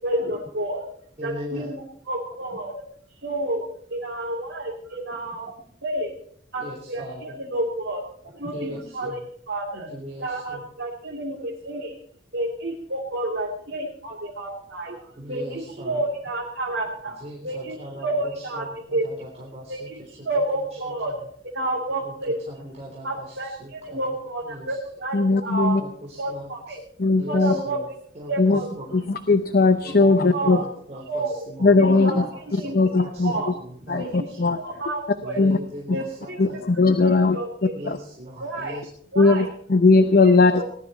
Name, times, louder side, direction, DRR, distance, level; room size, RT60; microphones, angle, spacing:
voice 1, 0.0-0.8 1.2-2.7 3.1-5.5 5.8-6.1 6.5-9.2 9.5-9.9 10.2-11.9 12.3-19.1 19.7-21.1 21.5-22.4 23.0-25.8 26.2-26.8 27.3-27.9 28.3-28.7 30.0-30.6 31.1-31.5 31.8-33.5 34.0-35.4 35.9-36.6 37.0-37.9 38.4-38.8 39.1-39.5 40.2-40.6, right 1 dB, 90° right, -4 dB, 3.1 m, -30 dB
voice 2, 1.2-1.7 6.6-7.3 8.5-9.1 9.7-10.6 15.2-16.0 17.2-18.1 18.6-18.7 19.0-19.7 22.8-23.2 23.6-24.0 24.5-24.7 25.8-25.9 26.3-26.5 27.1-27.4 27.6-27.8 28.2-28.3 28.8-29.0 29.8-30.2 30.4-32.2 32.6-32.7 33.1-33.5 33.9-34.0 35.2-36.6 37.7-38.8, equal, 40° right, -2 dB, 3.6 m, -38 dB
voice 3, 25.1-25.8 27.0-27.5 28.4-28.6 28.9-30.6 31.6-32.1 32.5-33.3 33.9-34.1 34.4-34.6 35.4-35.6 36.4-37.4 37.9-38.0 39.2-40.6, left 3 dB, 55° left, 9 dB, 0.8 m, -18 dB
19.5 x 12.0 x 4.4 m, 0.63 s
head